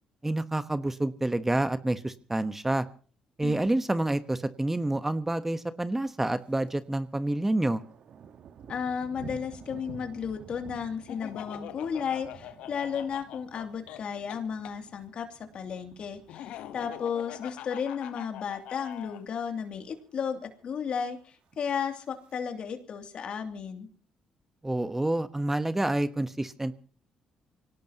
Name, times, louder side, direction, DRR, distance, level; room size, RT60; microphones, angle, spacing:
voice 1, 0.2-2.8 3.4-7.8 24.6-26.7, right 1 dB, 15° right, 12 dB, 1.1 m, -28 dB
Thunder, 6.2-6.8 7.1-17.4 17.8-18.1 18.6-19.0 19.3-19.4 19.6-19.7 20.0-20.6 21.4-22.3, right 7 dB, 60° right, 1.4 m, -51 dB
voice 2, 8.7-23.9, left 7 dB, 60° left, 6 dB, 2.7 m, -34 dB
Laughter, 11.1-14.7 16.3-19.2, left 12 dB, 75° left, 1.1 m, -43 dB
25.0 x 17.5 x 2.9 m, 0.41 s
supercardioid pair, 60°, 2 cm